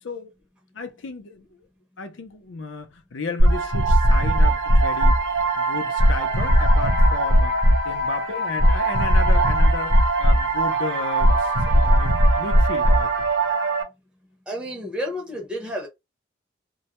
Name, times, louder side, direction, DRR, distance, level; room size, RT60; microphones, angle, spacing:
voice 1, 0.7-1.6 2.0-5.2 5.6-7.6 7.8-13.1, left 4 dB, 80° left, 0.5 m, -34 dB
sound 1, 3.4-13.8, right 1 dB, 80° right, 0.7 m, -19 dB
voice 2, 14.5-15.9, equal, 5° right, 0.6 m, -30 dB
2.2 x 2.1 x 2.8 m
head